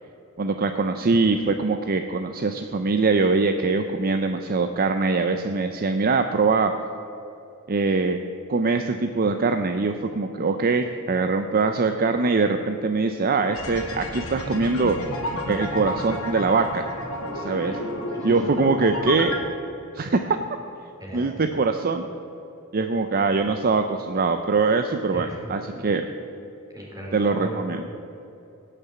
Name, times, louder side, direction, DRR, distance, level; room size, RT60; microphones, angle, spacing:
voice 1, 0.4-6.7 7.7-8.2 8.5-15.0 15.5-16.8 17.4-17.8 18.2-19.3 19.9-20.4 21.1-22.0 22.7-26.1 27.1-27.8, right 4 dB, 40° right, 7 dB, 0.6 m, -23 dB
sound 1, 13.5-19.4, left 1 dB, 70° left, 2.1 m, -31 dB
voice 2, 17.2-17.8 18.1-18.4 20.1-20.2 21.0-21.3 25.1-25.8 26.7-27.6, right 1 dB, 15° right, -4 dB, 3.8 m, -38 dB
16.5 x 6.8 x 8.5 m, 2.8 s
head